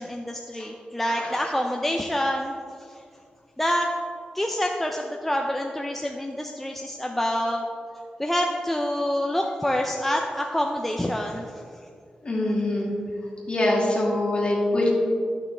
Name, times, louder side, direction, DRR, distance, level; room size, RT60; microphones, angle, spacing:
voice 1, 0.0-2.6 2.9-3.0 3.6-3.9 4.3-7.6 8.2-11.4, left 1 dB, 5° left, 1 dB, 0.4 m, -27 dB
voice 2, 12.2-12.9 13.5-14.9, left 1 dB, 40° left, -4 dB, 2.2 m, -24 dB
12.0 x 5.9 x 3.3 m, 2.3 s
wide cardioid pair, 125°, 3 cm